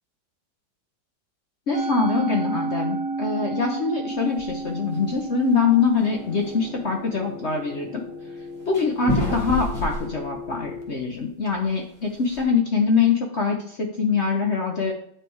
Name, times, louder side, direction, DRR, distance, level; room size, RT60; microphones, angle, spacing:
voice 1, 1.7-8.0 8.7-14.9, left 5 dB, 55° left, 1 dB, 0.7 m, -23 dB
Musical instrument, 1.7-8.1, right 3 dB, 55° right, 1.1 m, -32 dB
sound 1, 4.4-4.6 5.0-5.4 5.8-5.9 6.3-6.4 8.7-11.2 11.5-11.6 12.0-12.4, left 1 dB, 15° left, 2.1 m, -29 dB
sound 2, 6.0-10.8, left 4 dB, 30° right, 0.5 m, -39 dB
9.1 x 3.3 x 4.6 m, 0.68 s
omnidirectional pair, 2.1 m